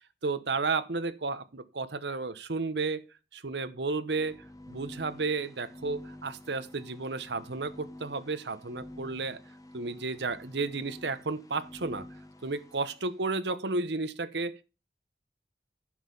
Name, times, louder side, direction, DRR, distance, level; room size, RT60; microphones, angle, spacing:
voice 1, 0.2-3.0 3.3-4.4 4.7-9.4 9.7-12.1 12.4-14.6, right 3 dB, 70° right, 1.0 m, -32 dB
sound 1, 4.0-13.1, left 1 dB, 20° left, 1.1 m, -49 dB
10.5 x 6.5 x 5.4 m
head